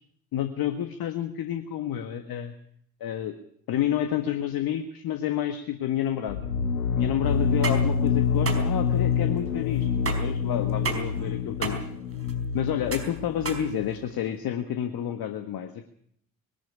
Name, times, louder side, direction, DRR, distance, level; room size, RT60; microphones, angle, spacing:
voice 1, 0.3-2.5 3.0-3.3 3.7-6.4 7.0-11.8 12.5-15.8, left 10 dB, 55° left, 8 dB, 1.7 m, -29 dB
sound 1, 6.3-13.9, left 6 dB, 85° left, 1.3 m, -27 dB
sound 2, 7.4-14.4, right 4 dB, 30° right, 4.7 m, -35 dB
21.0 x 12.5 x 10.0 m, 0.68 s
figure-of-eight pair, 50°, 43 cm